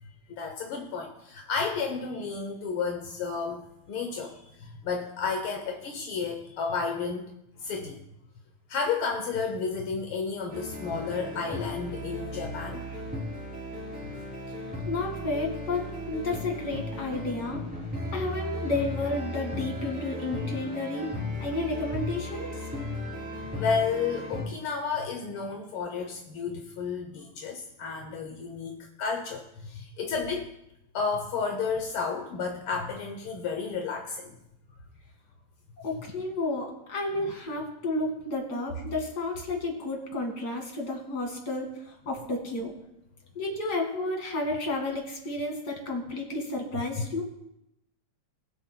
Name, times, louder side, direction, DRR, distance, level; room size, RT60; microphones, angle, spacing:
voice 1, 0.0-7.3 7.6-8.0 8.7-13.1 23.5-30.5 30.9-34.4, left 5 dB, 70° left, 3 dB, 1.3 m, -32 dB
sound 1, 10.5-24.4, left 1 dB, 5° right, 2.8 m, -36 dB
voice 2, 14.9-17.6 18.1-22.7 35.8-42.7 43.4-47.2, left 2 dB, 35° left, 1 dB, 2.2 m, -32 dB
20.0 x 8.0 x 2.2 m, 0.84 s
omnidirectional pair, 3.3 m